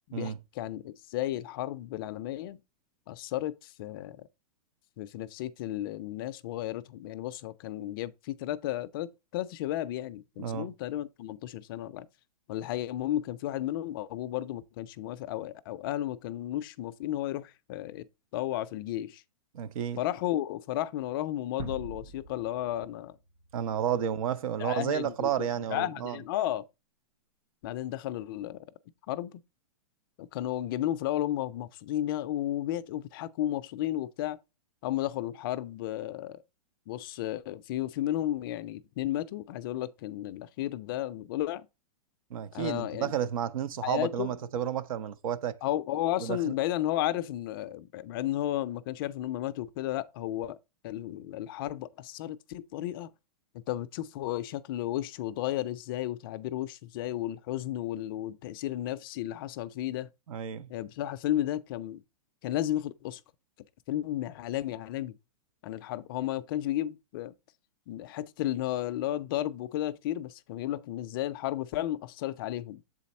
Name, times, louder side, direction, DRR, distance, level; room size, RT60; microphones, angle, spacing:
voice 1, 0.1-2.6 3.1-4.3 5.0-12.1 12.5-18.1 18.3-19.2 20.0-23.2 24.6-26.6 27.6-28.6 29.1-29.4 30.2-34.4 34.8-36.4 36.9-41.7 42.5-43.1 43.8-44.3 45.6-50.6 50.8-53.1 53.5-60.1 60.7-62.0 62.4-63.2 63.9-65.2 65.6-67.3 67.9-72.8, left 13 dB, 35° left, 0.4 m, -33 dB
voice 2, 19.5-20.0 23.5-26.2 42.3-45.6 46.2-46.5 60.3-60.7, right 9 dB, 65° right, 0.7 m, -31 dB
sound 1, 21.6-24.5, right 2 dB, 85° right, 1.0 m, -45 dB
7.4 x 4.1 x 4.1 m
hypercardioid pair, 150°, 19 cm